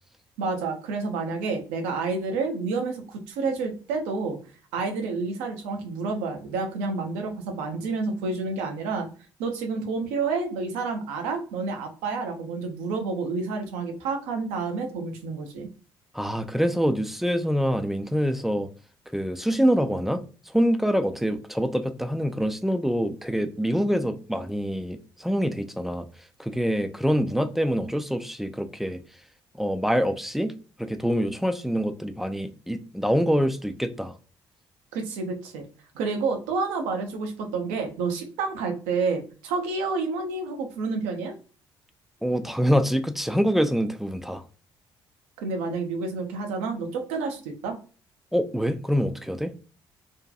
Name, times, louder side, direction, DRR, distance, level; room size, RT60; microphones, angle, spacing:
voice 1, 0.4-4.4 4.7-9.1 9.4-15.7 34.9-35.6 35.9-41.3 45.4-47.8, right 4 dB, 65° right, 0.6 m, -29 dB
voice 2, 16.1-18.7 19.1-20.2 20.5-26.1 26.4-29.0 29.6-30.5 30.8-34.1 42.2-44.4 48.3-49.5, equal, ahead, 0.3 m, -25 dB
2.6 x 2.2 x 2.5 m
figure-of-eight pair, 45°, 12 cm